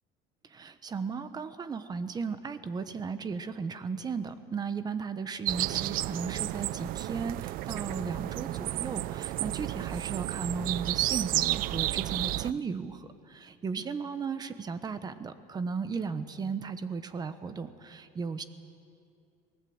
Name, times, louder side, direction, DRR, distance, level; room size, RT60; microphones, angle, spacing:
voice 1, 0.5-18.4, right 5 dB, 20° right, 11 dB, 1.1 m, -35 dB
sound 1, 5.5-12.5, right 16 dB, 50° right, 0.4 m, -32 dB
24.0 x 19.0 x 7.9 m, 2.5 s
cardioid pair, 145°, 18 cm